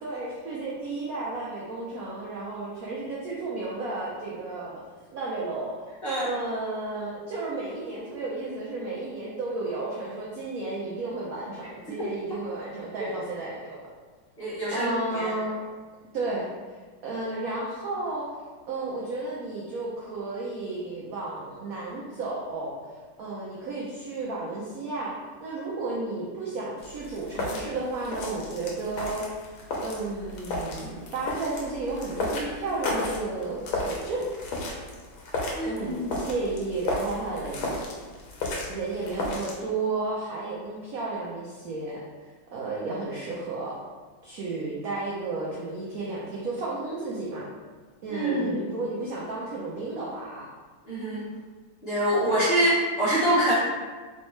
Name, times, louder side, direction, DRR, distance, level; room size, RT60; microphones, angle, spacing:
voice 1, 0.0-4.8 5.1-5.9 6.2-13.9 14.7-15.6 16.1-16.5 17.0-18.3 18.7-22.8 23.2-25.1 25.4-29.4 29.8-34.3 35.6-37.7 38.7-42.0 42.5-43.8 44.2-47.5 48.0-50.5 52.1-52.3, right 3 dB, 80° right, -5 dB, 0.8 m, -33 dB
voice 2, 14.4-15.3 35.5-36.2 48.1-48.7 50.8-51.3 51.8-53.5, right 1 dB, 40° left, -10 dB, 0.9 m, -25 dB
sound 1, 26.8-39.6, left 2 dB, 85° left, 1.5 m, -34 dB
3.4 x 3.2 x 3.0 m, 1.4 s
omnidirectional pair, 2.2 m